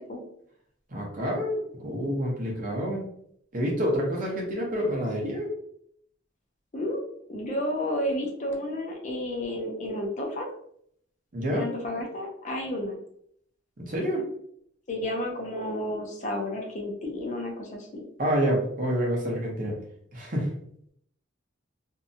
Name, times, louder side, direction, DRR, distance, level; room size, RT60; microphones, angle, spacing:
voice 1, 0.9-3.0 3.5-5.5 11.3-11.6 13.8-14.2 18.2-19.7 20.1-20.5, equal, 45° right, -2 dB, 0.8 m, -28 dB
voice 2, 7.3-10.5 11.5-13.0 14.9-18.0, left 1 dB, 40° left, 0 dB, 0.5 m, -31 dB
2.7 x 2.2 x 2.6 m, 0.68 s
head